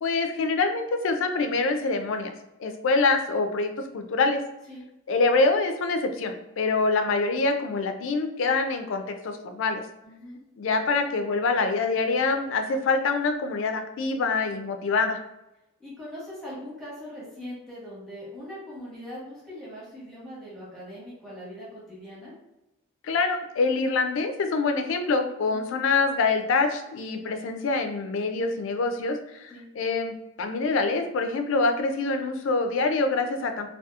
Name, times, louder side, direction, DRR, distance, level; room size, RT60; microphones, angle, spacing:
voice 1, 0.0-2.3 2.6-4.4 5.1-9.8 10.6-15.2 23.0-33.7, left 3 dB, 65° left, 6 dB, 0.3 m, -25 dB
voice 2, 10.0-10.4 15.8-22.4 25.4-25.7 29.5-29.6, equal, ahead, -9 dB, 0.9 m, -41 dB
2.7 x 2.3 x 2.3 m, 0.92 s
head